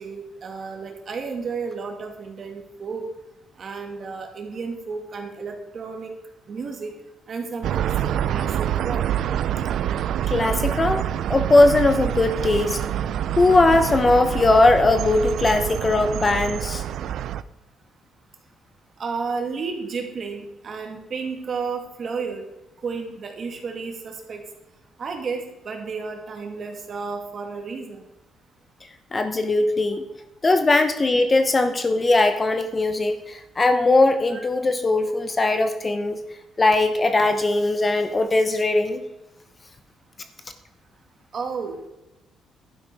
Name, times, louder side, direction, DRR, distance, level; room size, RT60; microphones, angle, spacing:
voice 1, 0.0-3.0 3.6-6.1 6.5-6.9 7.3-9.0 19.0-22.4 22.8-24.4 25.0-28.0 34.3-34.5 41.3-41.9, right 5 dB, 45° right, 3 dB, 2.5 m, -32 dB
sound 1, 7.6-17.4, right 10 dB, 70° right, 0.5 m, -26 dB
voice 2, 10.3-11.0 11.3-12.8 13.4-16.8 29.1-30.1 30.4-36.2 36.6-39.0, left 2 dB, 25° left, 8 dB, 1.0 m, -19 dB
11.5 x 10.0 x 4.9 m, 0.94 s
cardioid pair, 120°, 0 cm